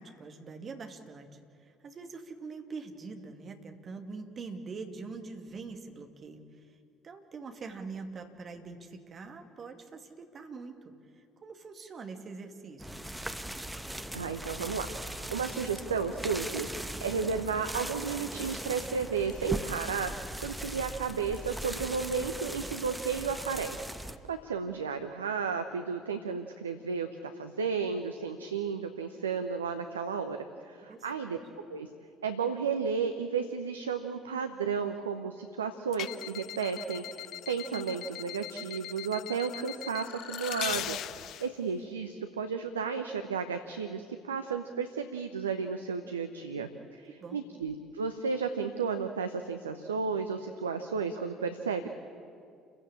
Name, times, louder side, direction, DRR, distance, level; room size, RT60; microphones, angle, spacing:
voice 1, 0.0-6.8 7.0-13.0 30.9-31.4 46.5-46.7 47.2-47.5, right 4 dB, 40° right, 5 dB, 2.5 m, -44 dB
sound 1, 12.8-24.2, right 1 dB, 5° right, 1.3 m, -39 dB
voice 2, 14.1-30.4 30.7-31.4 31.7-31.9 32.2-51.9, right 5 dB, 80° right, 8 dB, 0.9 m, -33 dB
sound 2, 35.9-41.5, left 12 dB, 55° left, 0.6 m, -39 dB
29.0 x 16.0 x 8.8 m, 2.4 s
figure-of-eight pair, 55°, 0 cm